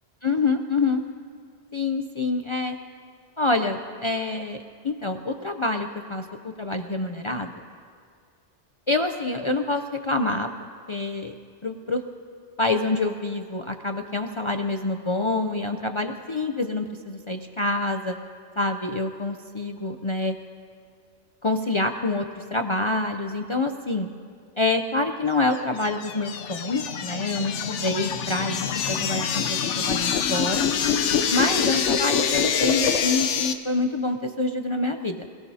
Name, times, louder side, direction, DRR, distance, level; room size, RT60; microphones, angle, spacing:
voice 1, 0.2-1.0 1.7-2.8 3.4-6.3 6.6-7.5 8.9-10.5 10.9-11.3 11.6-12.0 12.6-18.2 18.6-20.4 21.4-24.1 24.6-30.7 31.3-35.2, left 2 dB, 45° left, 6 dB, 0.4 m, -26 dB
sound 1, 25.5-33.5, left 7 dB, 80° left, 1.0 m, -25 dB
27.5 x 17.0 x 2.7 m, 2.2 s
omnidirectional pair, 1.2 m